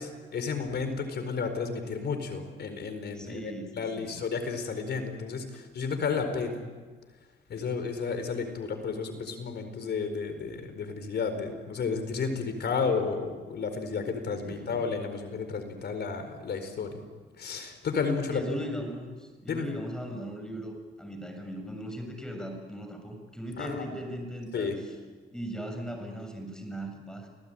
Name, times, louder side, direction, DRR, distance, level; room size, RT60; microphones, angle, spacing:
voice 1, 0.0-6.6 7.5-17.0 17.4-18.4 19.5-19.7 23.6-23.8 24.5-24.7, left 5 dB, 55° left, 8 dB, 4.6 m, -32 dB
voice 2, 3.1-4.2 7.6-7.7 14.4-14.8 18.3-24.7 25.3-27.3, equal, 5° left, 4 dB, 6.9 m, -38 dB
29.5 x 18.5 x 9.0 m, 1.4 s
cardioid pair, 90°, 20 cm